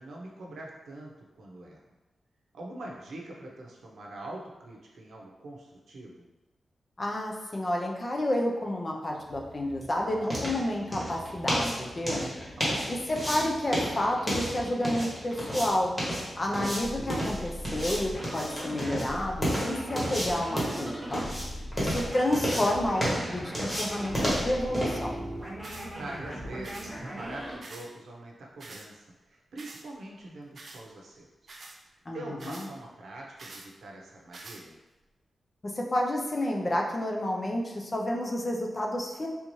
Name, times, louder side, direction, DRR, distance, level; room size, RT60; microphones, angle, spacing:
voice 1, 0.0-1.8 2.5-6.3 12.6-12.9 21.6-22.0 26.0-31.6 31.8-34.8, right 1 dB, 85° right, -2 dB, 0.6 m, -44 dB
voice 2, 7.0-12.3 12.9-15.9 16.4-21.3 21.8-25.2 32.1-32.2 32.5-32.6 35.6-39.3, left 1 dB, 30° left, 0 dB, 0.5 m, -30 dB
sound 1, 9.2-27.0, equal, 10° left, 1.1 m, -33 dB
sound 2, 16.8-27.6, equal, 10° right, 0.8 m, -39 dB
sound 3, 25.6-25.9 26.6-26.9 27.6-27.9 28.6-28.9 29.6-29.8 30.6-30.8 31.5-31.8 32.4-32.7 33.4-33.7 34.3-34.6, right 3 dB, 50° right, 0.4 m, -45 dB
3.5 x 2.7 x 3.0 m, 1.1 s
wide cardioid pair, 140°, 0 cm